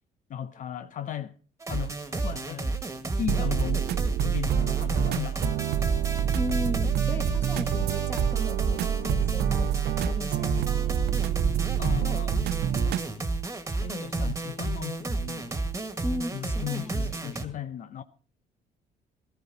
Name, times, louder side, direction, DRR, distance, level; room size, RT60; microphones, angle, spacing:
voice 1, 0.3-1.3 1.7-2.8 3.2-3.9 4.2-5.5 5.8-6.0 11.8-12.4 13.7-15.6 16.3-18.0, left 10 dB, 50° left, 0.7 m, -36 dB
sound 1, 1.6-17.4, right 3 dB, 15° right, 1.8 m, -32 dB
sound 2, 3.3-13.1, right 9 dB, 70° right, 0.8 m, -27 dB
voice 2, 6.3-10.9 16.0-17.2, left 1 dB, 15° left, 1.7 m, -36 dB
15.0 x 14.0 x 4.0 m
cardioid pair, 110°, 17 cm